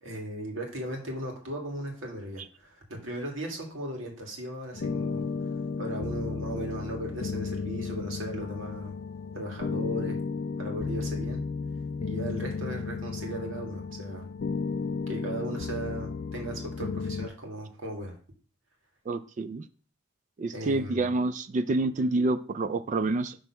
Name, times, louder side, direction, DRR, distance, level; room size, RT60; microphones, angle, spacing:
voice 1, 0.0-5.2 5.8-8.9 9.3-10.2 10.6-11.4 12.1-14.3 15.1-18.1 20.5-21.1, right 1 dB, 85° right, 1 dB, 1.8 m, -37 dB
sound 1, 4.7-17.3, left 4 dB, 55° left, 0.4 m, -33 dB
voice 2, 19.1-19.6 20.4-23.4, right 2 dB, 40° right, 12 dB, 0.3 m, -28 dB
6.1 x 3.3 x 5.6 m, 0.41 s
head